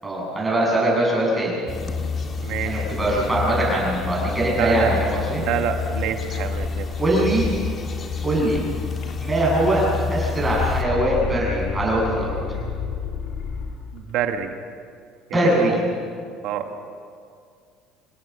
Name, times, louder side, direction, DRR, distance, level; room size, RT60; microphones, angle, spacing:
voice 1, 0.0-1.6 2.6-5.4 7.0-7.5 8.2-8.6 9.2-9.8 10.1-12.3 15.3-15.8, right 1 dB, 10° right, -4 dB, 7.9 m, -22 dB
sound 1, 1.7-10.8, left 5 dB, 25° left, 1.8 m, -28 dB
voice 2, 2.4-2.9 4.5-4.9 5.4-6.9 13.9-14.5 15.3-15.8 16.4-16.7, right 9 dB, 60° right, 5 dB, 2.0 m, -27 dB
sound 2, 8.5-8.6 9.0-9.6 9.9-13.8, left 5 dB, 60° left, 3.2 m, -30 dB
27.0 x 17.5 x 7.0 m, 2.3 s
cardioid pair, 165°, 0 cm